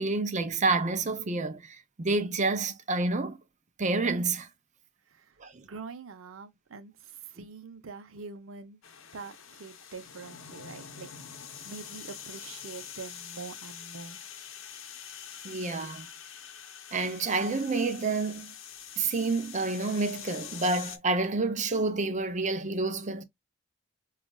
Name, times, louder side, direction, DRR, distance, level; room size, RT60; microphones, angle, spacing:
voice 1, 0.0-3.4 3.8-4.5 5.4-5.6 7.4-7.5 15.4-16.1 16.9-18.5 19.0-23.2, right 3 dB, 35° right, 0.6 m, -29 dB
voice 2, 5.1-5.4 5.6-8.8 9.1-11.1 11.6-14.2, right 4 dB, 90° right, 0.6 m, -44 dB
sound 1, 8.8-21.0, left 8 dB, 75° left, 0.7 m, -45 dB
5.0 x 2.4 x 2.2 m
head